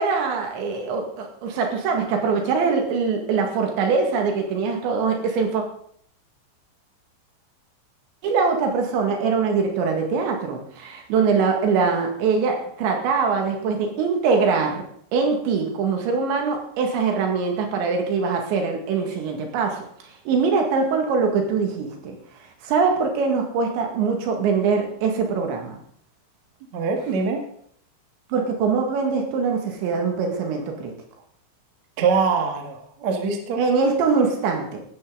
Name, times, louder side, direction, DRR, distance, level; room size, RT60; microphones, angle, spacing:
voice 1, 0.0-5.6 8.2-14.9 15.1-19.9 20.3-22.2 22.6-25.8 28.3-30.9 33.6-34.8, right 5 dB, 75° right, 3 dB, 4.2 m, -23 dB
voice 2, 26.7-27.4 32.0-33.6, right 5 dB, 50° right, 3 dB, 2.4 m, -23 dB
15.5 x 13.0 x 3.9 m, 0.62 s
omnidirectional pair, 5.4 m